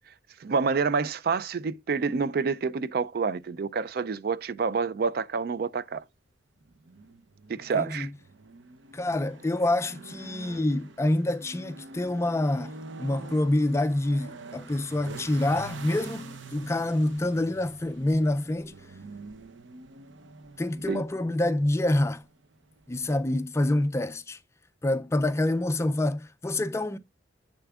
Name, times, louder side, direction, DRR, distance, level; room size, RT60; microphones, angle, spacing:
voice 1, 0.4-6.0 7.5-8.1 20.9-21.0, right 5 dB, 55° right, 0.4 m, -28 dB
sound 1, 6.6-23.2, right 3 dB, 90° right, 0.7 m, -46 dB
voice 2, 7.7-8.1 8.9-18.7 20.6-22.2 22.9-24.4 24.8-27.0, left 1 dB, 15° left, 0.3 m, -27 dB
8.1 x 6.8 x 2.3 m
head